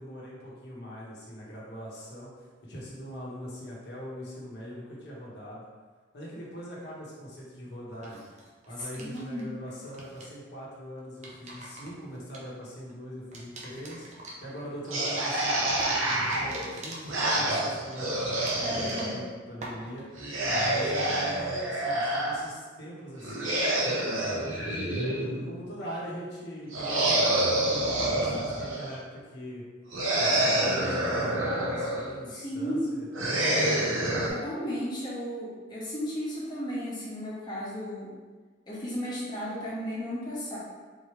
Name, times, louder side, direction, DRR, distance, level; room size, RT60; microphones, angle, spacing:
voice 1, 0.0-2.3 2.6-5.6 6.1-8.2 8.7-14.1 14.4-18.1 18.6-20.0 20.5-23.7 24.6-29.6 30.1-33.8, equal, 55° left, -6 dB, 1.3 m, -41 dB
sound 1, 7.9-9.4 9.7-10.4 11.0-12.9 13.3-19.3 19.6-20.2, right 2 dB, 35° right, 0.7 m, -45 dB
voice 2, 8.8-9.5 18.6-19.2 32.3-32.9 34.3-38.1 38.7-40.6, equal, 20° left, -9 dB, 1.3 m, -34 dB
sound 2, 14.9-19.2 20.2-22.4 23.2-25.6 26.7-28.9 29.9-32.1 33.1-34.3, right 1 dB, 85° right, 1.0 m, -27 dB
4.4 x 3.2 x 3.2 m, 1.4 s
head